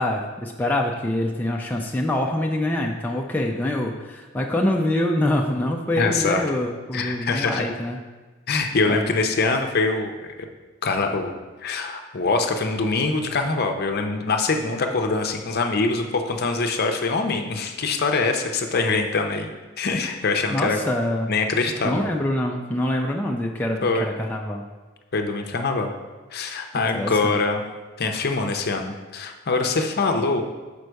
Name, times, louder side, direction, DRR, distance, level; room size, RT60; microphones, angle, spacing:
voice 1, 0.0-8.0 8.9-9.1 20.5-21.3 21.8-24.6 26.9-27.3, left 1 dB, 10° left, 0 dB, 0.4 m, -25 dB
voice 2, 6.0-6.4 6.9-7.6 8.5-10.1 10.8-11.3 11.6-19.5 19.8-20.8 21.3-22.0 23.8-24.1 25.1-25.9 26.3-27.6 28.0-30.4, left 3 dB, 50° left, 4 dB, 0.7 m, -23 dB
6.4 x 5.3 x 4.6 m, 1.3 s
head